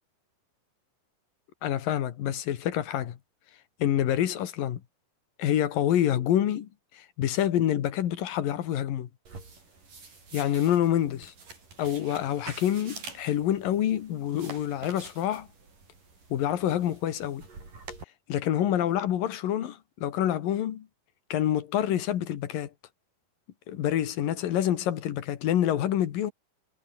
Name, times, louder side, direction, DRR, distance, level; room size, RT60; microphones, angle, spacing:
voice 1, 1.6-3.2 3.8-4.8 5.4-6.7 6.9-9.1 10.3-11.3 11.8-15.5 16.3-17.4 18.3-20.9 21.3-22.7 23.7-26.3, left 11 dB, 90° left, 3.5 m, -27 dB
sound 1, 9.3-18.0, right 4 dB, 75° right, 9.5 m, -47 dB
omnidirectional pair, 3.8 m